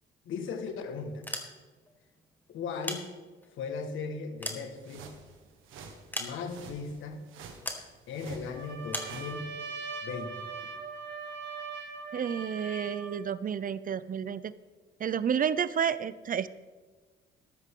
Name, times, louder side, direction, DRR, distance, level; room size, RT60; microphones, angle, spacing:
voice 1, 0.2-1.2 2.5-3.1 3.5-5.1 6.2-7.2 8.1-9.5 10.0-10.7, left 5 dB, 80° left, 6 dB, 1.8 m, -37 dB
sound 1, 1.1-1.9 2.6-3.6 4.1-5.3 6.1-6.8 7.7-7.9 8.9-9.2, left 1 dB, 10° left, 1.8 m, -38 dB
sound 2, 4.5-9.4, right 5 dB, 85° right, 1.6 m, -50 dB
Trumpet, 8.5-13.3, right 4 dB, 65° right, 2.0 m, -41 dB
voice 2, 12.1-14.5 15.0-16.5, right 8 dB, 45° right, 16 dB, 0.6 m, -30 dB
14.0 x 12.5 x 3.8 m, 1.3 s
cardioid pair, 90°, 20 cm